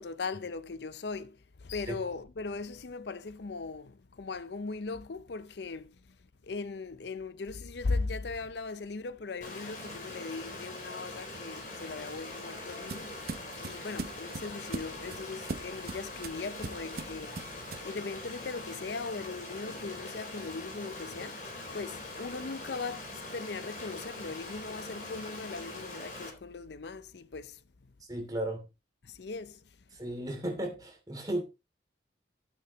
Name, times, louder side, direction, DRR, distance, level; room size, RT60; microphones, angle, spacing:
voice 1, 0.0-6.0 6.4-13.2 13.6-17.4 17.8-27.6 29.0-29.6, left 4 dB, 70° left, 0.6 m, -39 dB
Stream, 9.4-26.3, left 2 dB, 45° left, 4.2 m, -43 dB
sound 1, 11.9-18.0, right 3 dB, 55° right, 0.8 m, -41 dB
voice 2, 28.1-28.6 29.9-31.4, right 1 dB, 20° right, 2.7 m, -34 dB
12.5 x 8.4 x 3.1 m
head